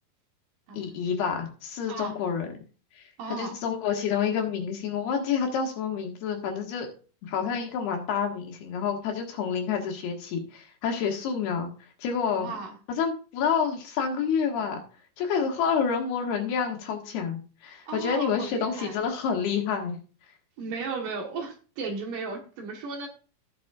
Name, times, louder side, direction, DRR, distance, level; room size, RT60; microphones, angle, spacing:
voice 1, 0.7-2.5 3.3-6.9 7.2-11.7 12.0-12.5 13.0-14.8 15.2-20.0, left 6 dB, 75° left, 2 dB, 3.7 m, -28 dB
voice 2, 3.2-3.6 12.3-12.8 17.9-19.0 20.6-23.1, right 4 dB, 65° right, 2 dB, 2.7 m, -35 dB
17.0 x 6.2 x 2.4 m, 0.37 s
omnidirectional pair, 4.6 m